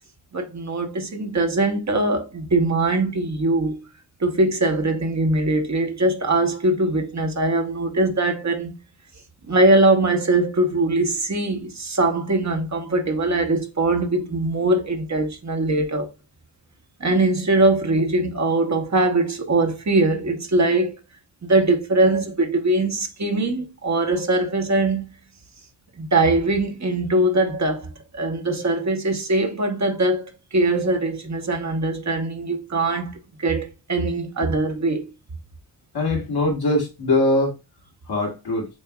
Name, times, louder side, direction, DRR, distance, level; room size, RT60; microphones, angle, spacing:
voice 1, 0.3-3.9 4.2-8.8 9.5-16.1 17.0-20.9 21.4-25.1 26.0-35.1, right 2 dB, 40° right, 1.1 m, -21 dB
voice 2, 35.9-37.6 38.1-38.7, left 2 dB, 60° left, 1.7 m, -22 dB
7.1 x 2.6 x 2.4 m
cardioid pair, 65°, 43 cm